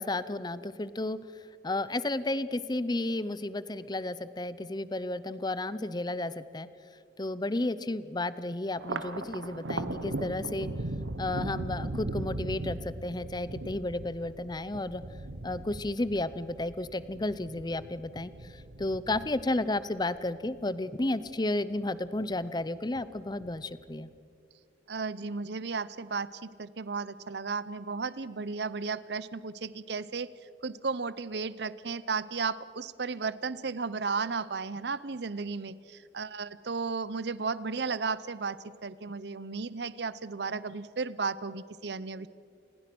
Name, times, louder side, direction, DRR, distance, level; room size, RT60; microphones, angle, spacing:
voice 1, 0.0-6.7 7.2-10.7 11.2-15.0 15.4-24.1, left 2 dB, 25° left, 15 dB, 0.7 m, -32 dB
Thunder, 8.7-21.4 21.8-22.6 22.9-23.8, right 2 dB, 90° right, 1.2 m, -39 dB
voice 2, 24.9-30.3 30.6-42.3, right 4 dB, 65° right, 17 dB, 0.8 m, -34 dB
28.5 x 20.0 x 6.2 m, 2.4 s
head